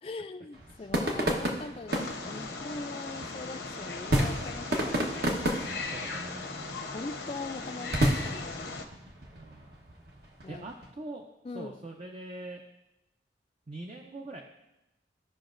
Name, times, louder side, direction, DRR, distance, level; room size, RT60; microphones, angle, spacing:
voice 1, 0.0-5.4 6.9-8.8 10.4-10.7 11.4-11.9, left 3 dB, 30° left, 8 dB, 0.3 m, -41 dB
sound 1, 0.5-10.9, right 1 dB, 60° right, 1.1 m, -32 dB
Wild animals, 1.9-8.8, left 3 dB, 70° left, 0.9 m, -38 dB
voice 2, 5.6-6.8 9.3-9.8 10.5-11.2 11.5-12.6 13.7-14.4, right 2 dB, 35° right, 2 dB, 0.6 m, -43 dB
15.0 x 5.7 x 2.5 m, 0.93 s
head